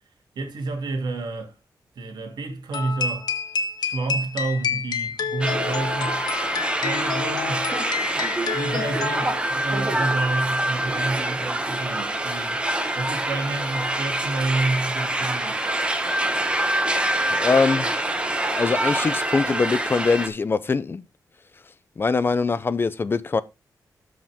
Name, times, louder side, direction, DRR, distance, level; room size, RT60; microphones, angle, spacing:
voice 1, 0.4-1.6 2.0-3.3 3.8-6.3 6.8-7.7 8.5-15.6, right 3 dB, 80° right, 2.6 m, -29 dB
sound 1, 2.7-9.6, left 5 dB, 75° left, 1.4 m, -29 dB
sound 2, 5.4-20.3, right 1 dB, 15° right, 1.3 m, -25 dB
voice 2, 17.3-18.1 18.6-21.0 22.0-23.4, left 4 dB, 30° left, 0.6 m, -22 dB
13.0 x 5.1 x 3.6 m
wide cardioid pair, 155°, 7 cm